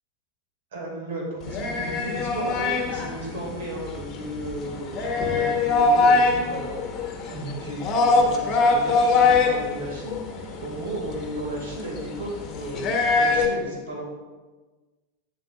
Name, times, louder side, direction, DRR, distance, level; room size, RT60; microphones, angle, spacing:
voice 1, 0.7-6.8 7.0-14.0, right 1 dB, 60° right, -1 dB, 2.1 m, -34 dB
sound 1, 1.4-13.5, left 3 dB, 30° left, 1.1 m, -23 dB
11.0 x 7.0 x 2.4 m, 1.3 s
figure-of-eight pair, 90°, 0 cm